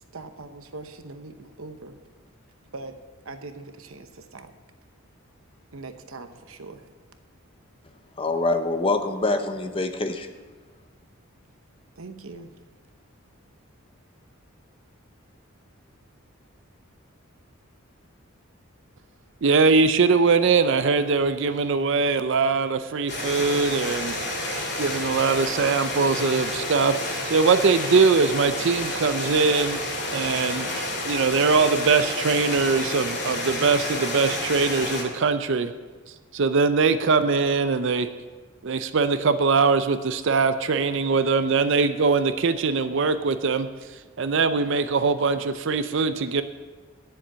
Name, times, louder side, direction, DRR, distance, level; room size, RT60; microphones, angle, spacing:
voice 1, 0.1-2.0 2.7-2.9 3.2-4.5 5.7-6.8 12.0-12.5, right 3 dB, 75° right, 8 dB, 0.9 m, -41 dB
voice 2, 8.2-10.3, left 2 dB, 25° left, 7 dB, 0.7 m, -25 dB
voice 3, 19.4-24.1 24.8-29.8 30.1-30.7 31.0-35.7 36.3-38.1 38.6-43.7 44.2-46.4, right 4 dB, 60° right, 11 dB, 0.5 m, -22 dB
sound 1, 23.1-35.0, left 1 dB, 55° left, 2.2 m, -30 dB
10.0 x 7.1 x 7.4 m, 1.3 s
head